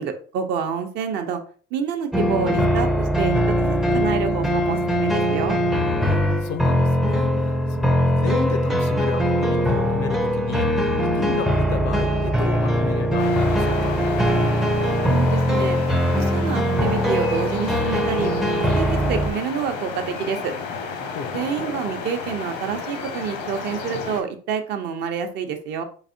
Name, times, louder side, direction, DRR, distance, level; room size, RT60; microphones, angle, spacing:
voice 1, 0.0-1.4 1.7-5.6 15.1-15.8 16.1-18.3 18.6-20.5 21.3-25.8, right 7 dB, 60° right, 0.7 m, -28 dB
sound 1, 2.1-19.3, equal, ahead, 0.4 m, -21 dB
voice 2, 6.0-14.0 21.1-21.4, left 7 dB, 65° left, 0.6 m, -32 dB
sound 2, 13.2-24.2, left 5 dB, 90° left, 1.1 m, -32 dB
4.0 x 3.4 x 2.6 m
cardioid pair, 115°, 19 cm